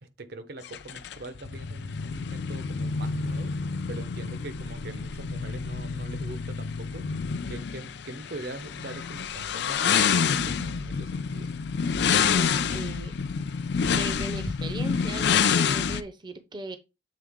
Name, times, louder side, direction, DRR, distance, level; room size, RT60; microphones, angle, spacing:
voice 1, 0.0-3.5 3.9-7.1 7.5-11.5, right 2 dB, 60° right, 0.8 m, -42 dB
sound 1, 0.7-16.0, left 6 dB, 60° left, 0.5 m, -28 dB
voice 2, 12.1-13.2 13.9-16.8, right 2 dB, 25° right, 0.6 m, -38 dB
7.6 x 3.8 x 3.6 m
head